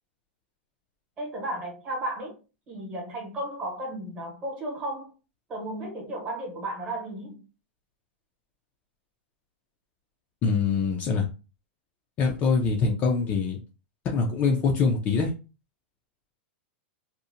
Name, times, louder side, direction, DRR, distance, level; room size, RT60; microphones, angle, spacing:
voice 1, 1.2-2.4 2.7-5.1 5.5-7.4, right 1 dB, 20° right, 0.9 m, -34 dB
voice 2, 10.4-11.2 12.2-13.6 14.0-15.3, left 5 dB, 25° left, 0.3 m, -24 dB
2.7 x 2.0 x 2.5 m
supercardioid pair, 165°, 6 cm